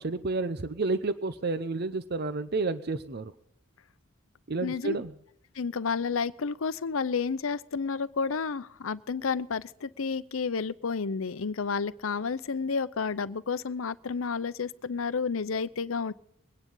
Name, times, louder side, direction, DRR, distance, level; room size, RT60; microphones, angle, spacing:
voice 1, 0.0-3.3 4.5-5.1, right 3 dB, 50° right, 12 dB, 0.7 m, -30 dB
voice 2, 4.6-5.0 5.5-16.1, left 5 dB, 75° left, 16 dB, 0.6 m, -31 dB
23.0 x 10.0 x 3.8 m, 0.69 s
head